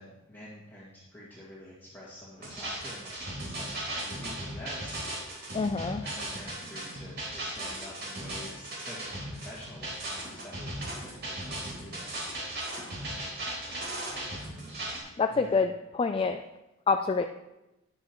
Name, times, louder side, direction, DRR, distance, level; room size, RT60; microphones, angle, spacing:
voice 1, 0.0-5.0 5.6-12.2 15.3-15.6, left 1 dB, 10° left, -8 dB, 2.0 m, -47 dB
sound 1, 2.4-15.0, right 1 dB, 50° right, 3.6 m, -37 dB
voice 2, 5.5-6.0 15.2-16.4 16.9-17.2, left 4 dB, 25° left, 6 dB, 0.3 m, -26 dB
12.5 x 9.7 x 3.0 m, 0.95 s
head